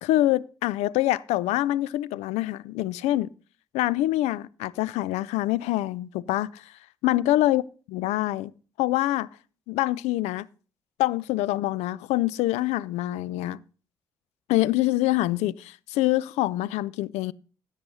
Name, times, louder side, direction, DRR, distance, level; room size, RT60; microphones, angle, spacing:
voice 1, 0.0-3.3 3.7-6.7 7.0-7.6 7.9-8.5 8.8-9.3 9.7-10.5 11.0-13.6 14.5-17.3, left 16 dB, 60° left, 0.4 m, -25 dB
15.5 x 8.2 x 2.8 m
figure-of-eight pair, 40°, 13 cm